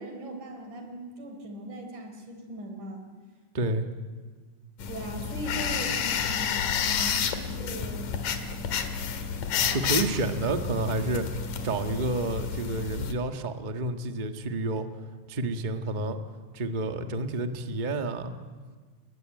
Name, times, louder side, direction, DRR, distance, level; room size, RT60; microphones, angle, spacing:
voice 1, 0.0-3.1 4.9-8.0, right 1 dB, 75° right, 4 dB, 5.7 m, -39 dB
voice 2, 3.5-3.9 9.7-14.9 15.3-16.2 16.5-18.3, right 2 dB, 40° right, 6 dB, 0.6 m, -30 dB
sound 1, 4.8-13.1, left 7 dB, 90° left, 3.3 m, -30 dB
30.0 x 21.5 x 9.1 m, 1.5 s
omnidirectional pair, 3.6 m